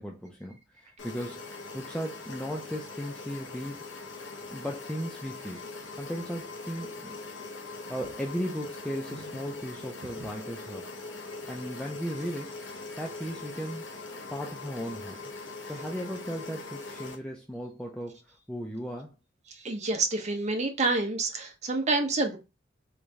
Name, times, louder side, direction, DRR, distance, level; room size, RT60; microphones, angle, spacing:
voice 1, 0.0-3.8 4.5-5.7 5.9-7.2 7.9-10.9 11.5-12.6 13.0-13.8 14.3-15.3 15.7-18.2 18.5-19.1, equal, 5° left, 0.5 m, -36 dB
sound 1, 1.0-17.2, left 3 dB, 85° left, 0.9 m, -42 dB
voice 2, 19.5-22.4, right 3 dB, 40° right, 0.8 m, -28 dB
3.5 x 3.1 x 2.6 m
head